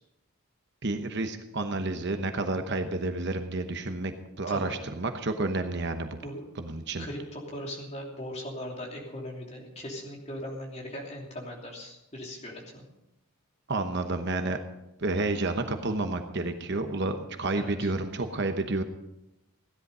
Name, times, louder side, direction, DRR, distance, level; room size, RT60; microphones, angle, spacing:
voice 1, 0.8-4.1 4.4-6.2 6.6-7.1 13.7-14.6 15.0-18.8, right 2 dB, 50° right, 7 dB, 1.0 m, -30 dB
voice 2, 4.5-4.8 6.2-6.5 7.0-12.8 17.5-17.9, equal, 30° left, -1 dB, 3.0 m, -39 dB
16.0 x 11.0 x 5.5 m, 0.90 s
head